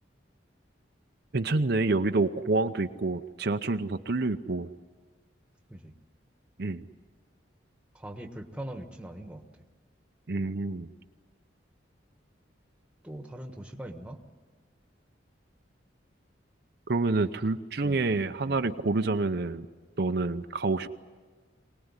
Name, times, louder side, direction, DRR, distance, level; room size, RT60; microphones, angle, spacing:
voice 1, 1.3-4.7 6.6-6.8 10.3-10.9 16.9-19.7 20.0-20.9, right 3 dB, 55° right, 7 dB, 0.7 m, -28 dB
voice 2, 7.9-9.4 13.0-14.2 17.8-18.7, right 1 dB, 5° right, 4 dB, 1.4 m, -42 dB
24.0 x 19.0 x 9.7 m, 1.4 s
head